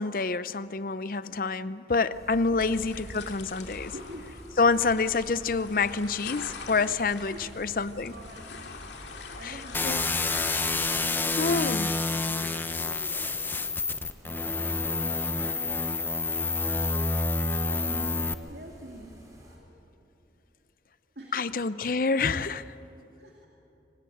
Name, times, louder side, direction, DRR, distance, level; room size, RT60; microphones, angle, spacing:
voice 1, 0.0-3.9 4.6-8.1 9.4-10.0 11.4-11.9 21.3-22.6, left 4 dB, 50° left, 15 dB, 0.6 m, -27 dB
sound 1, 2.1-19.6, equal, 20° right, 4.1 m, -52 dB
sound 2, 2.6-11.0, left 4 dB, 85° left, 2.3 m, -43 dB
voice 2, 3.9-4.3 7.3-7.7 8.0-8.8 9.1-10.8 11.2-11.7 12.2-13.4 14.2-15.7 17.7-19.8 21.2-21.5 23.1-23.5, right 1 dB, 70° right, 0 dB, 2.4 m, -47 dB
sound 3, 9.7-18.3, left 3 dB, 10° left, 0.7 m, -28 dB
25.5 x 18.5 x 9.2 m, 2.9 s
head